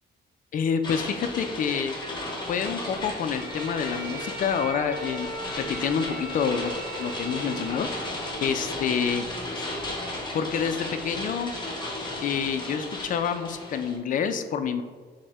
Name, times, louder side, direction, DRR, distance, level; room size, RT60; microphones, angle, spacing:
voice 1, 0.5-2.0 2.5-5.3 5.6-6.7 7.0-8.1 8.4-9.3 9.5-9.7 10.3-11.5 12.2-14.8, left 7 dB, 50° left, 9 dB, 0.4 m, -28 dB
sound 1, 0.8-14.0, left 1 dB, 25° left, 0.9 m, -35 dB
Bowed string instrument, 3.3-8.5, right 1 dB, 60° right, 1.0 m, -38 dB
6.1 x 2.1 x 3.4 m, 1.5 s
cardioid pair, 115°, 18 cm